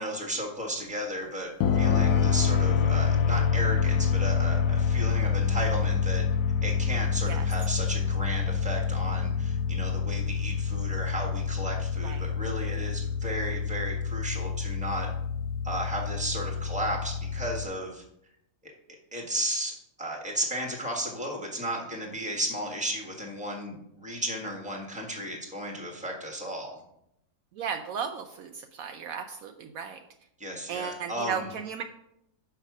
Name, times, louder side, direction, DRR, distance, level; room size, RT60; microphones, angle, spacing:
voice 1, 0.0-6.2 6.6-15.1 15.6-18.0 18.6-18.7 19.1-26.8 30.4-31.5, right 1 dB, 5° right, 0 dB, 1.4 m, -34 dB
sound 1, 1.6-17.7, left 6 dB, 85° left, 1.1 m, -27 dB
voice 2, 27.6-30.0 30.7-31.8, right 7 dB, 70° right, 6 dB, 1.0 m, -35 dB
5.8 x 5.8 x 6.0 m, 0.78 s
omnidirectional pair, 1.6 m